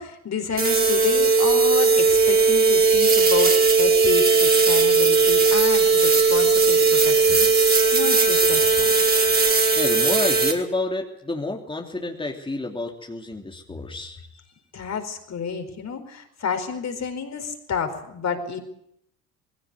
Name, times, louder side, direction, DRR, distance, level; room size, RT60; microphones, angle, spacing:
voice 1, 0.0-8.9 14.7-18.6, left 6 dB, 40° left, 6 dB, 4.7 m, -30 dB
sound 1, 0.6-10.5, right 4 dB, 20° right, 4.8 m, -18 dB
voice 2, 9.7-14.2, left 2 dB, 10° left, 1 dB, 3.1 m, -29 dB
21.0 x 17.0 x 9.6 m, 0.75 s
hypercardioid pair, 65°, 42 cm